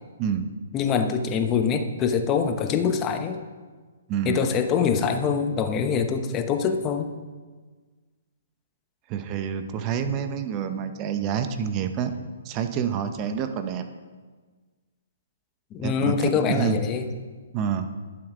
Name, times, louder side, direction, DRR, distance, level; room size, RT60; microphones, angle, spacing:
voice 1, 0.2-0.5 4.1-4.5 9.1-12.1 12.4-13.8 15.8-16.8 17.5-17.9, right 8 dB, 30° right, 8 dB, 0.9 m, -28 dB
voice 2, 0.7-3.4 4.2-7.1 15.7-17.1, left 6 dB, 25° left, 7 dB, 0.9 m, -24 dB
11.5 x 7.5 x 5.0 m, 1.4 s
hypercardioid pair, 140°, 0 cm